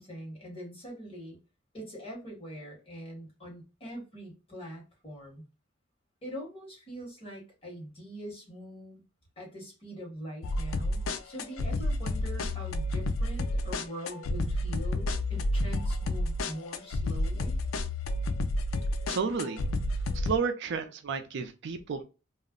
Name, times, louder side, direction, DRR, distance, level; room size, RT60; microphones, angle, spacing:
voice 1, 0.0-1.4 1.7-5.4 6.2-9.0 9.4-17.6, equal, 30° left, 1.3 m, -43 dB
sound 1, 10.4-20.4, left 1 dB, 80° left, 0.4 m, -30 dB
voice 2, 19.1-19.6 20.1-22.0, right 5 dB, 60° right, 0.4 m, -31 dB
2.4 x 2.0 x 3.6 m
head